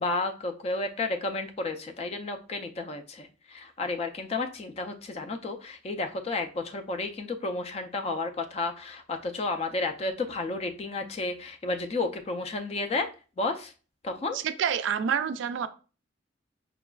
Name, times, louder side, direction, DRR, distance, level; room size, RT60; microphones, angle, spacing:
voice 1, 0.0-13.1 13.4-13.7 14.0-14.4, left 3 dB, 30° left, 6 dB, 0.3 m, -32 dB
voice 2, 14.3-15.7, right 7 dB, 75° right, 12 dB, 0.3 m, -28 dB
4.8 x 2.3 x 2.2 m, 0.35 s
head